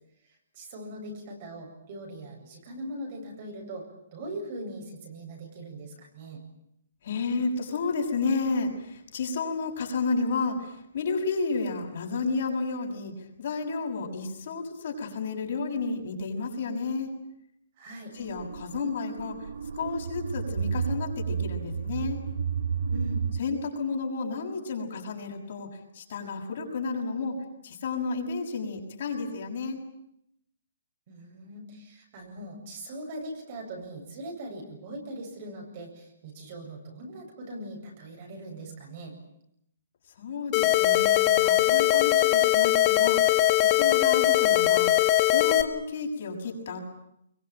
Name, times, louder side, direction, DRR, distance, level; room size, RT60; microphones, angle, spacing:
voice 1, 0.5-3.9 4.1-6.4 17.8-18.1 22.9-23.2 31.1-39.1, right 1 dB, 35° right, 2 dB, 7.9 m, -40 dB
voice 2, 7.0-13.1 13.4-17.1 18.1-19.5 19.7-22.2 23.4-25.7 25.9-27.4 27.6-29.8 40.2-44.9 45.3-46.8, left 4 dB, 50° left, 1 dB, 6.6 m, -31 dB
sound 1, 18.2-23.4, right 6 dB, 85° right, 1.1 m, -31 dB
sound 2, 40.5-45.6, left 13 dB, 20° left, 1.5 m, -21 dB
24.5 x 23.5 x 9.1 m, 0.76 s
hypercardioid pair, 170°, 0 cm